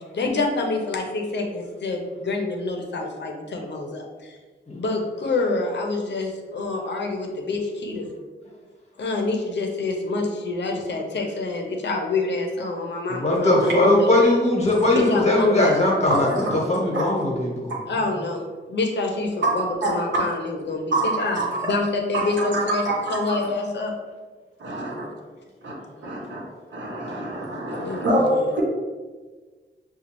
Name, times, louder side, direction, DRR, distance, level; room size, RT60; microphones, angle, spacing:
voice 1, 0.0-4.0 4.8-8.1 9.0-14.1 14.9-15.7 17.9-18.4 18.7-21.4 21.6-22.8 23.1-23.9 27.7-28.5, left 3 dB, 70° left, 2 dB, 0.7 m, -27 dB
voice 2, 13.1-17.7, left 1 dB, 35° left, -2 dB, 1.0 m, -20 dB
voice 3, 16.1-16.5 16.9-17.0 19.4-19.5 19.8-20.0 20.9-21.7 22.1-23.5 24.6-25.1 25.6-25.7 26.0-26.4 26.7-28.6, right 2 dB, 80° right, -5 dB, 0.9 m, -26 dB
6.1 x 2.3 x 3.0 m, 1.4 s
wide cardioid pair, 170°, 19 cm